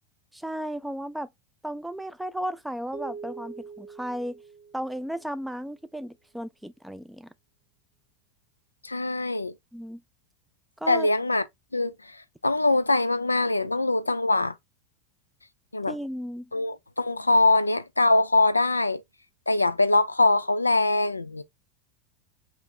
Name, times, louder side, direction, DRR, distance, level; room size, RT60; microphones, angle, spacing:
voice 1, 0.3-1.3 1.6-4.4 4.7-7.3 9.7-10.0 10.8-11.1 15.9-16.5, equal, 5° right, 0.4 m, -34 dB
sound 1, 2.9-5.5, right 5 dB, 65° right, 0.8 m, -43 dB
voice 2, 8.8-9.5 10.9-11.4 11.7-11.9 12.4-14.5 15.7-15.9 16.5-19.0 19.5-21.4, left 2 dB, 85° left, 0.4 m, -23 dB
3.1 x 2.4 x 3.2 m
figure-of-eight pair, 85°, 0 cm